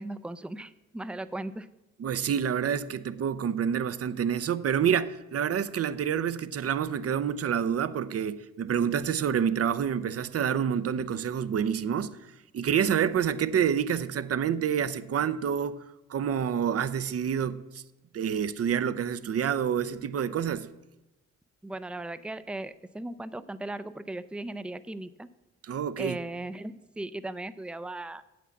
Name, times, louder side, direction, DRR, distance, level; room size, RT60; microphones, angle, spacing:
voice 1, 0.0-1.7 21.6-25.3 26.0-28.2, right 2 dB, 5° right, 0.4 m, -37 dB
voice 2, 2.0-12.2 12.5-17.8 18.1-20.7 25.6-26.2, right 8 dB, 45° right, 0.6 m, -28 dB
8.1 x 6.0 x 7.1 m
supercardioid pair, 60°, 33 cm